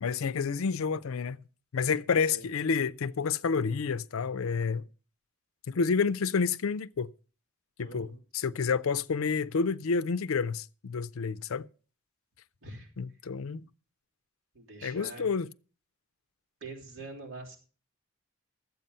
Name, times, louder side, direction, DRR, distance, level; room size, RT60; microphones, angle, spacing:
voice 1, 0.0-1.4 1.7-4.8 5.7-7.1 7.8-11.7 13.0-13.6 14.8-15.5, left 5 dB, 80° left, 0.5 m, -29 dB
voice 2, 7.8-8.2 12.6-12.9 14.5-15.3 16.6-17.6, right 3 dB, 70° right, 3.3 m, -44 dB
12.5 x 8.2 x 5.5 m
head